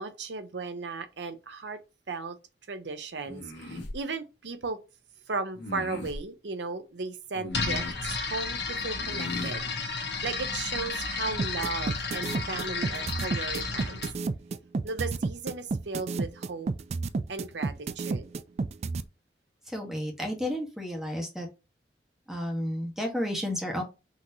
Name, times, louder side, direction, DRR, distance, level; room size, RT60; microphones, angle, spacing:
voice 1, 0.0-1.8 2.1-2.4 2.7-4.8 5.3-9.7 10.2-14.1 14.8-16.7 17.3-18.3, right 4 dB, 85° right, 0.7 m, -36 dB
sound 1, 3.2-4.0 5.5-6.2 7.3-8.1 9.0-9.6, left 2 dB, 85° left, 1.4 m, -38 dB
sound 2, 7.5-14.1, left 4 dB, 70° left, 1.1 m, -32 dB
sound 3, 11.4-19.0, right 3 dB, 35° right, 0.3 m, -30 dB
voice 2, 19.7-21.5 22.3-23.8, equal, ahead, 1.1 m, -32 dB
5.6 x 3.0 x 2.6 m
head